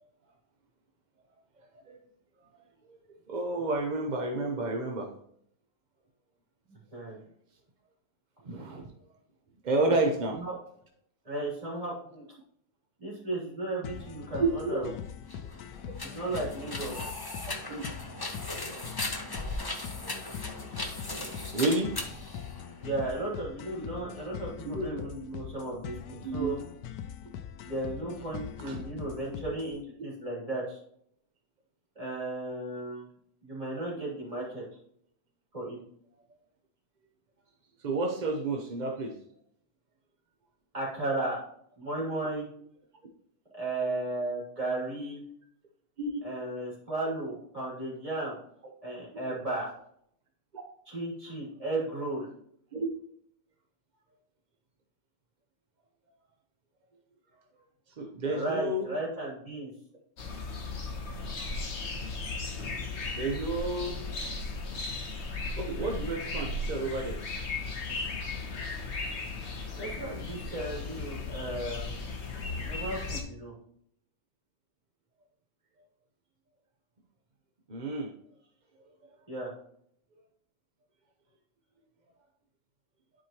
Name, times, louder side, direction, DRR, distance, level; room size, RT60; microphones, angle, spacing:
voice 1, 3.3-5.1 8.4-8.8 9.6-10.4 14.4-14.8 17.7-17.8 20.0-20.1 21.5-21.9 24.7-24.9 26.2-26.5 28.6-28.8 37.8-39.1 46.0-46.2 49.3-49.4 50.5-50.6 52.7-52.9 58.0-58.9 63.1-64.0 65.6-67.2 77.7-78.1, right 2 dB, 50° right, 2 dB, 0.5 m, -30 dB
voice 2, 6.7-7.2 9.9-10.0 10.4-10.6 11.2-12.2 13.0-14.9 16.0-16.9 18.3-18.4 22.8-26.6 27.6-30.8 31.9-33.1 33.4-34.6 35.5-35.8 40.7-41.4 41.8-42.5 43.5-45.2 46.2-48.4 48.8-49.7 50.9-52.3 58.3-59.7 69.8-72.1 72.6-73.5 79.3-79.5, right 2 dB, 20° right, -6 dB, 2.9 m, -35 dB
sound 1, 13.8-29.8, left 8 dB, 80° left, 1.2 m, -42 dB
sound 2, 15.2-23.1, left 2 dB, 30° left, 0.4 m, -38 dB
sound 3, 60.2-73.2, left 3 dB, 45° left, 1.2 m, -36 dB
11.0 x 4.6 x 2.9 m, 0.68 s
omnidirectional pair, 1.8 m